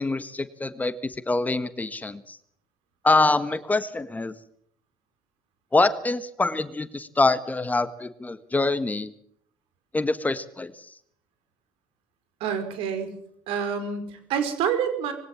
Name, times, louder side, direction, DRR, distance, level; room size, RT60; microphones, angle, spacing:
voice 1, 0.0-2.4 3.0-4.3 5.7-9.1 9.9-10.7, left 2 dB, 15° left, 12 dB, 1.5 m, -25 dB
voice 2, 12.4-13.2 13.5-15.1, right 7 dB, 70° right, 8 dB, 4.9 m, -27 dB
21.5 x 17.5 x 7.4 m, 0.65 s
supercardioid pair, 80°, 10 cm